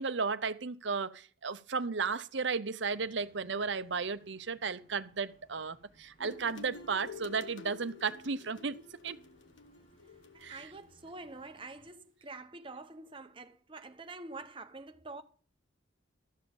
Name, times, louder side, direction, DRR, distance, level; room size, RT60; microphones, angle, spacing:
voice 1, 0.0-9.2 10.4-10.7, right 5 dB, 65° right, 0.8 m, -34 dB
sound 1, 2.9-11.9, equal, 40° left, 6.7 m, -66 dB
sound 2, 6.2-11.2, left 4 dB, 75° left, 1.2 m, -50 dB
voice 2, 10.3-15.2, right 3 dB, 25° right, 1.0 m, -46 dB
13.0 x 7.1 x 5.5 m
head